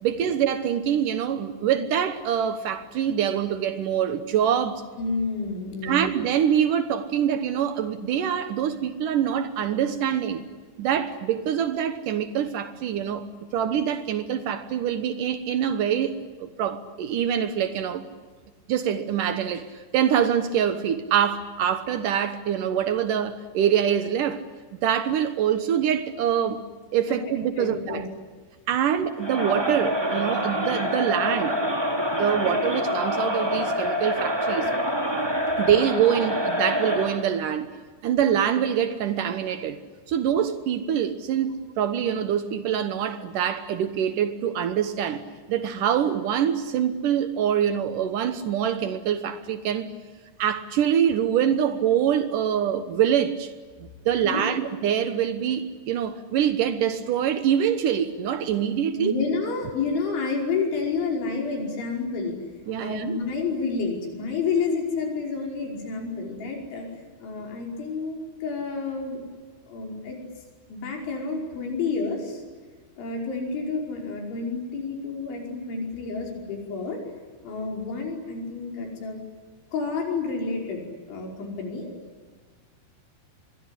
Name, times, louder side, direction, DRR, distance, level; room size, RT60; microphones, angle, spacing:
voice 1, 0.0-4.8 5.8-10.4 10.8-13.2 13.5-18.1 18.7-19.7 19.9-24.4 24.8-26.6 26.9-28.0 28.7-31.8 32.2-34.7 35.6-37.7 38.0-39.8 40.1-45.2 45.5-49.9 50.4-53.5 54.1-59.2 62.7-63.2, right 9 dB, 80° right, 1.9 m, -25 dB
voice 2, 5.0-6.1 27.1-27.2 27.6-28.1 54.2-54.6 59.0-62.4 62.7-66.9 67.2-69.2 69.7-70.2 70.7-72.4 73.0-77.0 77.4-79.2 79.7-81.9, left 4 dB, 70° left, 7.6 m, -29 dB
Crowd, 29.2-37.3, equal, 10° right, 1.6 m, -26 dB
25.5 x 22.5 x 9.9 m
omnidirectional pair, 5.5 m